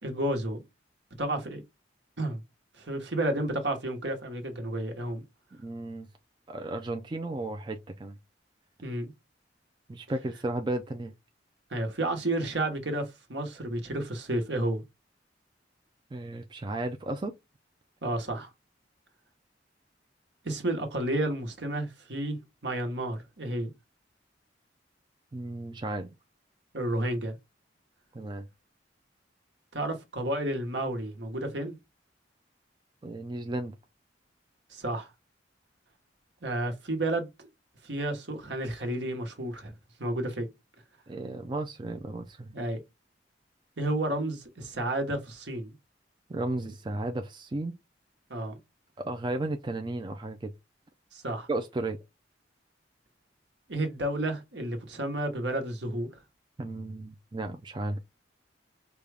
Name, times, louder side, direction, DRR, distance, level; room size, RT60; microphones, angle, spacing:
voice 1, 0.0-0.6 1.2-1.6 2.2-2.4 2.8-5.2 8.8-9.1 11.7-14.8 18.0-18.5 20.4-23.7 26.7-27.4 29.7-31.8 34.7-35.1 36.4-37.3 37.8-39.7 40.0-40.5 42.5-42.8 43.8-45.7 48.3-48.6 51.1-51.5 53.7-56.1, right 1 dB, 70° right, 1.2 m, -31 dB
voice 2, 5.6-6.1 6.5-8.2 9.9-11.1 16.1-17.4 25.3-26.1 28.1-28.5 33.0-33.7 41.1-42.6 46.3-47.7 49.0-50.5 51.5-52.0 56.6-58.0, right 2 dB, 25° right, 0.4 m, -34 dB
5.3 x 2.4 x 3.3 m
head